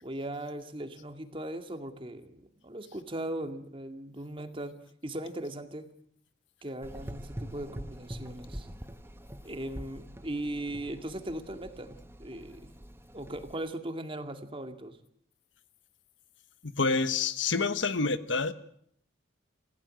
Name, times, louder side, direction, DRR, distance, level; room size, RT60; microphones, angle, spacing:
voice 1, 0.0-4.8 5.0-5.8 6.6-8.7 9.4-12.7 13.1-15.0, right 1 dB, 30° right, 2.3 m, -38 dB
Gurgling / Engine, 6.8-13.5, equal, 15° right, 1.1 m, -44 dB
voice 2, 16.6-18.5, left 4 dB, 80° left, 1.3 m, -28 dB
27.5 x 16.0 x 7.8 m
head